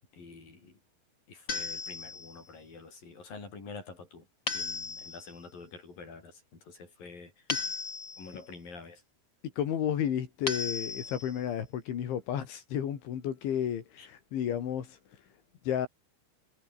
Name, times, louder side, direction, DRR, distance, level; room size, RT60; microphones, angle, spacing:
voice 1, 0.1-0.8 1.3-4.3 4.5-7.5 8.2-9.0 14.0-14.1, left 4 dB, 50° left, 9.3 m, -47 dB
sound 1, 1.5-2.4 4.5-5.3 7.5-8.4 10.5-11.4, left 4 dB, 25° left, 4.2 m, -36 dB
voice 2, 9.6-15.0 15.7-15.9, left 9 dB, 85° left, 5.4 m, -32 dB
omnidirectional pair, 5.3 m